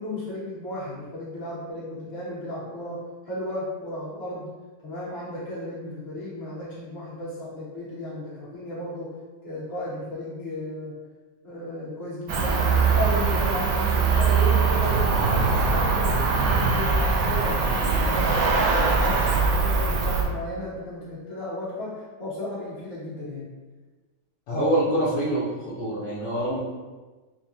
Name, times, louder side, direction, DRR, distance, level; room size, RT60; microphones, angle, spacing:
voice 1, 0.0-4.5 4.8-9.1 9.4-10.9 11.4-23.5, left 1 dB, 35° left, -9 dB, 1.4 m, -34 dB
Cricket, 12.3-20.2, right 4 dB, 85° right, 0.7 m, -22 dB
voice 2, 24.5-25.4 25.7-26.6, right 1 dB, 70° left, -8 dB, 1.5 m, -24 dB
5.0 x 2.2 x 2.8 m, 1.3 s
omnidirectional pair, 2.1 m